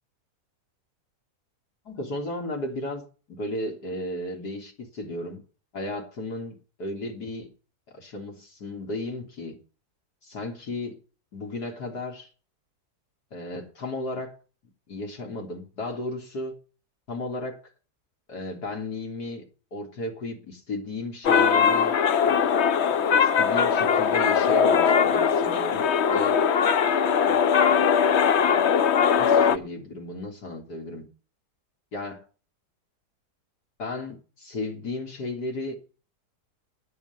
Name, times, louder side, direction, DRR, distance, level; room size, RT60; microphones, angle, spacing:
voice 1, 1.9-3.0 3.4-5.4 5.7-7.5 7.9-9.6 10.2-11.0 11.3-12.3 13.3-14.4 14.9-16.5 17.1-17.6 18.3-19.4 19.7-22.0 23.2-26.4 28.5-31.1 31.9-32.2 33.8-35.8, left 2 dB, 80° left, 3.9 m, -34 dB
sound 1, 21.2-29.6, left 7 dB, 55° left, 0.9 m, -20 dB
9.7 x 8.1 x 9.6 m
omnidirectional pair, 1.7 m